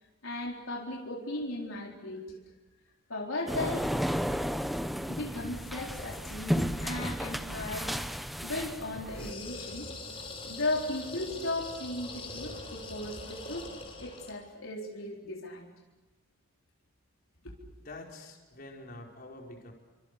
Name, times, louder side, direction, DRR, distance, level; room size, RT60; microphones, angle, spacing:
voice 1, 0.2-2.4 3.1-3.9 5.1-7.9 8.4-9.9 10.4-13.7 14.0-15.7 17.4-17.7, left 2 dB, 70° left, -1 dB, 4.1 m, -36 dB
sound 1, 3.5-9.3, equal, ahead, 0.8 m, -33 dB
sound 2, 9.1-14.4, left 3 dB, 25° left, 4.7 m, -43 dB
voice 2, 17.8-19.7, left 2 dB, 45° left, 0 dB, 4.8 m, -46 dB
29.5 x 25.0 x 6.7 m, 1.2 s
head